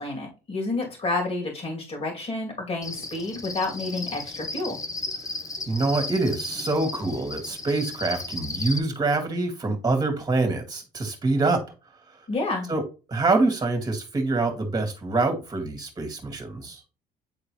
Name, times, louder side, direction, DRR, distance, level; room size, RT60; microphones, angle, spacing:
voice 1, 0.0-4.8 12.3-12.7, left 2 dB, 35° left, 2.6 m, -29 dB
Cricket, 2.8-8.8, left 3 dB, 20° left, 0.8 m, -35 dB
voice 2, 5.7-11.6 12.7-12.8 13.1-16.8, right 3 dB, 25° right, 2.1 m, -25 dB
9.2 x 3.8 x 3.1 m
cardioid pair, 110°, 17 cm